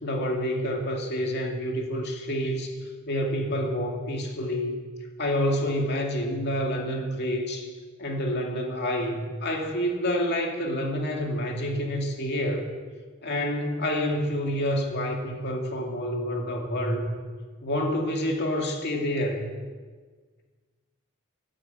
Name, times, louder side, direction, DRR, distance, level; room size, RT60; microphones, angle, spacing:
voice 1, 0.0-2.7 3.1-4.8 5.2-7.7 8.0-12.7 13.2-17.0 17.6-19.5, equal, 55° left, 1 dB, 2.3 m, -28 dB
13.0 x 9.2 x 8.5 m, 1.5 s
head